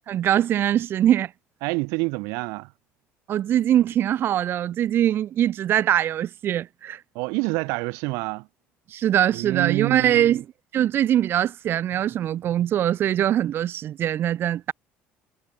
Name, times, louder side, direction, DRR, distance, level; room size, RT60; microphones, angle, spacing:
voice 1, 0.1-1.3 3.3-7.0 8.9-10.4 10.7-14.7, right 11 dB, 50° right, 0.5 m, -22 dB
voice 2, 1.6-2.7 7.1-8.5 9.3-10.4, right 29 dB, 80° right, 0.7 m, -27 dB
supercardioid pair, 95°, 5 cm